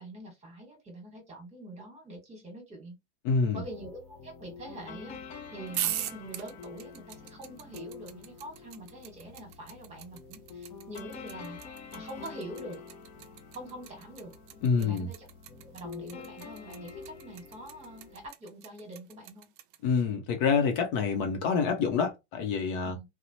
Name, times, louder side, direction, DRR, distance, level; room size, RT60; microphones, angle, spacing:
voice 1, 0.0-3.0 3.5-5.2 5.5-11.6 11.9-12.8 13.5-14.3 14.8-15.3 15.6-19.5 22.8-23.0, right 1 dB, 20° right, 1.4 m, -45 dB
voice 2, 3.2-3.6 14.6-15.1 19.8-22.9, left 5 dB, 50° left, 0.7 m, -27 dB
sound 1, 3.6-18.3, left 5 dB, 20° left, 0.3 m, -47 dB
sound 2, 5.7-19.8, right 12 dB, 45° right, 0.5 m, -39 dB
2.8 x 2.1 x 2.7 m
hypercardioid pair, 115°, 36 cm